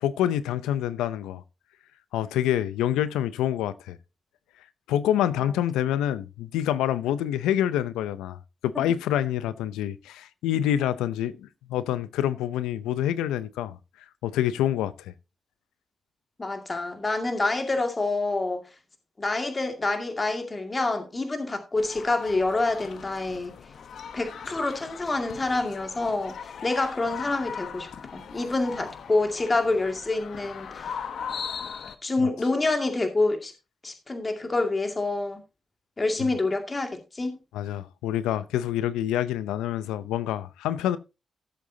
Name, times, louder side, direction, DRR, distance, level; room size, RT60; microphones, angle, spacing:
voice 1, 0.0-1.4 2.1-4.0 4.9-8.4 8.6-13.8 14.2-15.1 37.5-41.0, left 11 dB, 90° left, 0.6 m, -27 dB
voice 2, 16.4-18.6 19.2-23.5 24.1-26.3 26.6-31.0 32.0-33.5 33.8-35.4 36.0-37.4, left 2 dB, 35° left, 2.2 m, -27 dB
sound 1, 21.8-31.9, left 7 dB, 70° left, 1.0 m, -39 dB
16.5 x 7.6 x 2.8 m
supercardioid pair, 40°, 0 cm